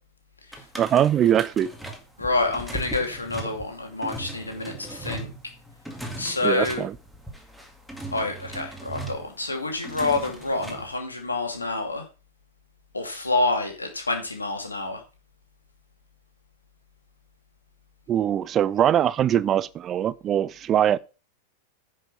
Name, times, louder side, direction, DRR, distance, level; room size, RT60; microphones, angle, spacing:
sound 1, 0.5-11.0, right 1 dB, ahead, 2.0 m, -38 dB
voice 1, 0.8-1.7 6.4-6.9 18.1-21.0, right 10 dB, 30° right, 0.5 m, -22 dB
voice 2, 2.2-5.3 6.2-6.9 8.1-12.0 12.9-15.0, left 2 dB, 80° left, 2.5 m, -27 dB
10.0 x 5.5 x 5.6 m
figure-of-eight pair, 90°, 0 cm